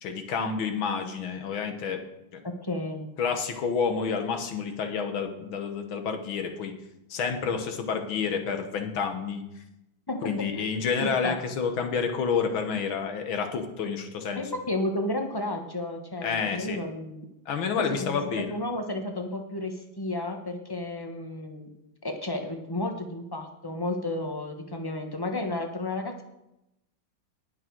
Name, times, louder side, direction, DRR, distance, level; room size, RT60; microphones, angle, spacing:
voice 1, 0.0-2.0 2.3-2.4 3.2-6.7 7.1-9.6 10.2-14.4 16.2-16.8 17.5-18.6, left 6 dB, 80° left, 6 dB, 2.0 m, -29 dB
voice 2, 2.4-3.1 10.1-10.7 11.0-11.4 14.4-17.3 17.9-18.1 18.5-21.7 22.0-26.2, left 1 dB, 15° left, 4 dB, 0.8 m, -32 dB
19.0 x 6.3 x 4.6 m, 0.87 s
omnidirectional pair, 2.2 m